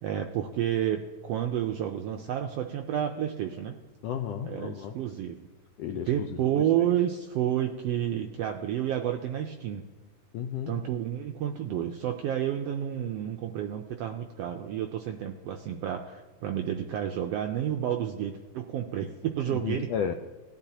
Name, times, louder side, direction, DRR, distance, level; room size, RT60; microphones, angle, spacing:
voice 1, 0.0-3.7 4.4-5.4 5.9-9.9 10.7-19.9, right 10 dB, 85° right, 4 dB, 1.4 m, -30 dB
voice 2, 4.0-5.0 5.8-6.4 6.8-6.9 10.3-10.8 19.5-20.1, left 8 dB, 85° left, 6 dB, 1.4 m, -33 dB
18.5 x 11.0 x 2.8 m, 1.3 s
omnidirectional pair, 3.4 m